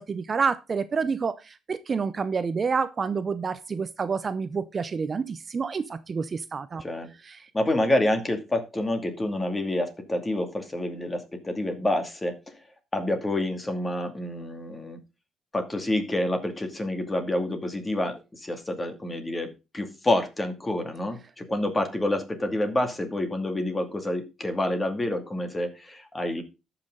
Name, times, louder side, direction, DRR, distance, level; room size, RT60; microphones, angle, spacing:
voice 1, 0.0-6.8 7.3-7.4, right 5 dB, 40° right, 13 dB, 0.6 m, -28 dB
voice 2, 7.5-12.6 12.9-15.0 15.5-26.4, left 1 dB, 20° left, 6 dB, 2.4 m, -28 dB
13.5 x 6.0 x 3.8 m, 0.28 s
cardioid pair, 90°, 0 cm